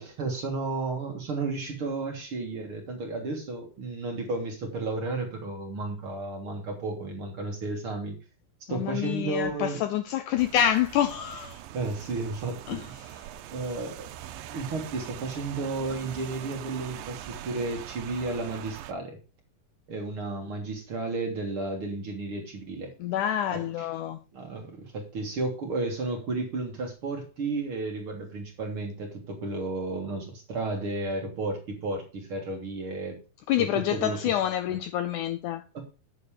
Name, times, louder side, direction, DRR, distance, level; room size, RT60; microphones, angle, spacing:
voice 1, 0.0-8.1 8.7-9.8 11.7-12.8 13.5-14.1 14.5-19.2 19.9-22.9 23.5-23.9 24.3-33.2 33.6-34.2 34.7-34.8 35.7-35.8, right 3 dB, 45° right, 2.1 m, -33 dB
voice 2, 8.7-11.6 12.7-12.9 23.0-24.2 33.5-35.6, left 10 dB, 80° left, 1.8 m, -27 dB
Rain, 10.4-18.9, right 12 dB, 90° right, 2.4 m, -42 dB
8.9 x 6.7 x 4.9 m
omnidirectional pair, 4.0 m